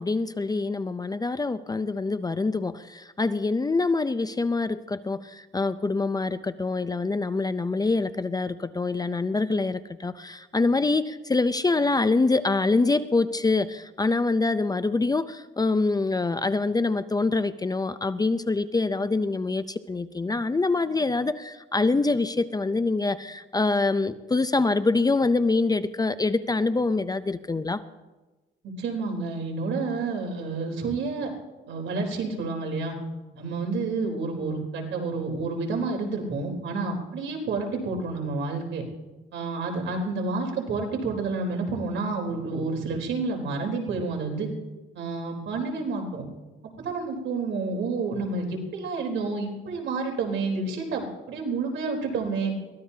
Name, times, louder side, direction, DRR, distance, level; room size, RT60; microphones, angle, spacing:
voice 1, 0.0-27.8, left 3 dB, 20° left, 13 dB, 0.6 m, -25 dB
voice 2, 28.8-31.3 31.7-33.0 33.3-38.8 39.3-44.5 44.9-46.3 46.8-52.5, right 3 dB, 75° right, 1 dB, 3.9 m, -29 dB
23.0 x 17.0 x 2.8 m, 1.2 s
cardioid pair, 90°, 20 cm